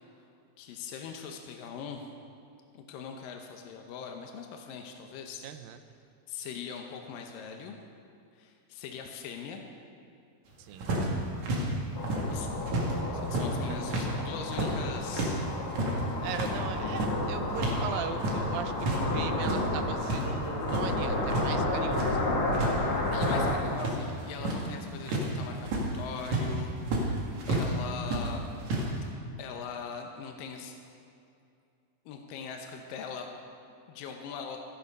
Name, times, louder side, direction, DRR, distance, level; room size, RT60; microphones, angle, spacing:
voice 1, 0.6-2.0 2.7-5.4 6.3-7.8 8.3-9.6 12.3-12.5 13.1-15.4 23.1-27.2 27.5-28.4 28.9-29.1 29.4-30.7 32.1-33.3 33.9-34.6, left 6 dB, 80° left, 3 dB, 2.6 m, -41 dB
voice 2, 5.4-5.8 10.6-10.9 13.6-13.8 16.2-22.1 23.6-23.8, right 9 dB, 85° right, 9 dB, 2.4 m, -39 dB
sound 1, 10.8-12.9 13.2-17.8 18.1-19.0 19.3-20.2 20.6-21.5 21.8-22.2 22.5-27.7 28.0-28.9, right 1 dB, 55° right, 3.1 m, -31 dB
sound 2, 12.0-23.5, left 2 dB, 55° left, 2.9 m, -32 dB
14.5 x 13.5 x 5.4 m, 2.5 s
omnidirectional pair, 4.1 m